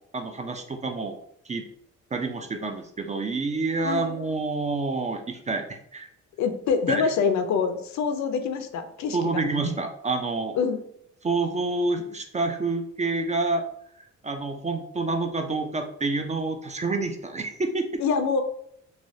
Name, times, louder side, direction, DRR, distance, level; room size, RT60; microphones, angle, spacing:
voice 1, 0.1-1.2 1.5-1.6 2.1-6.1 6.9-7.1 9.1-10.6 11.2-13.7 14.2-18.0, right 3 dB, 25° right, 5 dB, 0.4 m, -28 dB
voice 2, 3.8-4.2 6.4-9.4 10.5-10.8 18.0-18.4, left 5 dB, 65° left, 7 dB, 0.5 m, -25 dB
3.2 x 2.3 x 2.6 m, 0.69 s
cardioid pair, 90°, 30 cm